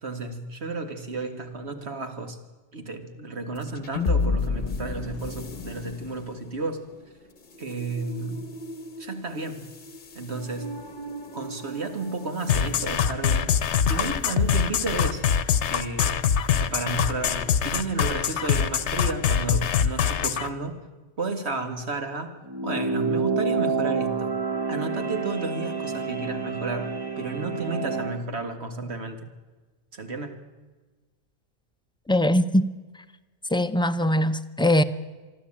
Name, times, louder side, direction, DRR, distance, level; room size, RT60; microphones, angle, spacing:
voice 1, 0.0-2.4 2.7-6.8 7.6-8.5 9.0-9.7 10.1-10.8 11.3-13.6 13.9-15.3 15.7-16.3 16.6-20.8 21.2-22.4 22.6-24.3 24.7-29.3 29.9-30.4, right 3 dB, 65° right, 2.1 m, -32 dB
sound 1, 3.6-14.1, left 4 dB, 45° left, 1.1 m, -34 dB
sound 2, 12.5-20.5, left 8 dB, 75° left, 1.1 m, -23 dB
sound 3, 22.5-28.2, right 5 dB, 20° right, 0.9 m, -28 dB
voice 2, 32.1-32.7 33.5-34.8, left 1 dB, 5° left, 0.5 m, -21 dB
24.0 x 13.0 x 8.8 m
omnidirectional pair, 1.2 m